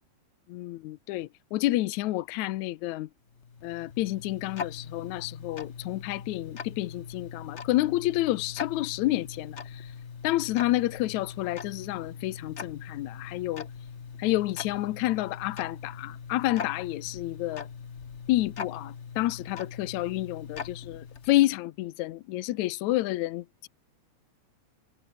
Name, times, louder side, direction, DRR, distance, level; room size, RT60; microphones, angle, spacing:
voice 1, 0.5-3.1 3.6-9.9 10.2-13.7 14.2-17.7 18.3-23.7, left 16 dB, 80° left, 2.1 m, -29 dB
Tick-tock, 3.3-21.6, left 6 dB, 55° left, 0.7 m, -41 dB
omnidirectional pair, 3.3 m